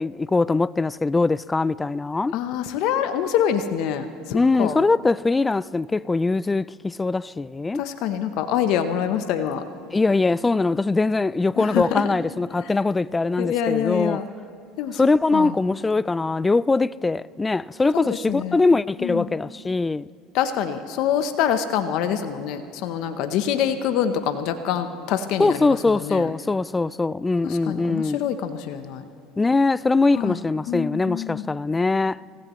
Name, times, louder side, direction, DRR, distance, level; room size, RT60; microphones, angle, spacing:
voice 1, 0.0-2.3 4.3-7.8 9.9-14.2 14.9-20.1 25.4-28.2 29.4-32.2, left 3 dB, 15° left, 0.3 m, -22 dB
voice 2, 2.3-4.8 7.8-9.6 11.6-12.0 12.6-12.7 13.4-14.3 14.8-15.0 15.3-15.5 17.9-18.6 19.0-19.3 20.3-26.3 27.4-29.0 30.2-30.4 30.7-31.5, left 9 dB, 65° left, 0.8 m, -25 dB
26.5 x 16.0 x 3.1 m
supercardioid pair, 95°, 0 cm